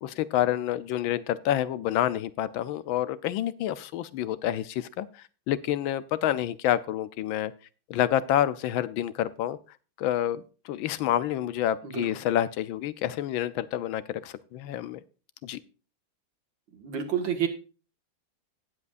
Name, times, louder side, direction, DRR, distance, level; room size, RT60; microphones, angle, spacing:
voice 1, 0.0-7.5 7.9-9.6 10.0-15.0 15.4-15.6, left 12 dB, 80° left, 16 dB, 1.5 m, -28 dB
voice 2, 16.7-17.5, right 8 dB, 70° right, 6 dB, 2.4 m, -29 dB
17.5 x 7.7 x 2.5 m, 0.36 s
omnidirectional pair, 2.2 m